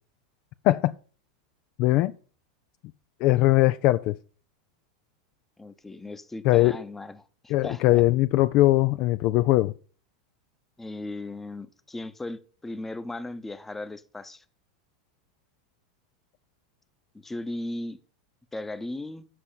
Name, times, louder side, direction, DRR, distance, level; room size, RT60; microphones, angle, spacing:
voice 1, 1.8-2.1 3.2-4.2 6.4-6.7 7.5-9.7, left 17 dB, 45° left, 0.3 m, -20 dB
voice 2, 5.6-8.0 10.8-14.4 17.2-18.0 18.5-19.3, left 2 dB, 10° left, 0.8 m, -37 dB
7.8 x 6.0 x 7.6 m
figure-of-eight pair, 85°, 3 cm